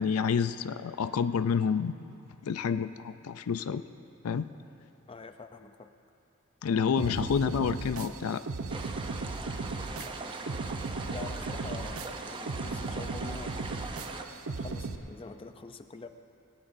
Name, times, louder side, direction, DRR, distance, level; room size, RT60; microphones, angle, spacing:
voice 1, 0.0-2.0 2.4-3.8 4.2-4.5 6.6-8.4 10.0-10.1, left 6 dB, 80° left, 12 dB, 0.4 m, -29 dB
voice 2, 5.1-5.9 11.1-16.1, left 3 dB, 25° left, 8 dB, 0.5 m, -45 dB
sound 1, 7.0-15.0, right 3 dB, 80° right, 0.7 m, -37 dB
sound 2, 8.7-14.2, right 3 dB, 25° right, 0.6 m, -41 dB
19.0 x 18.0 x 2.6 m, 2.7 s
head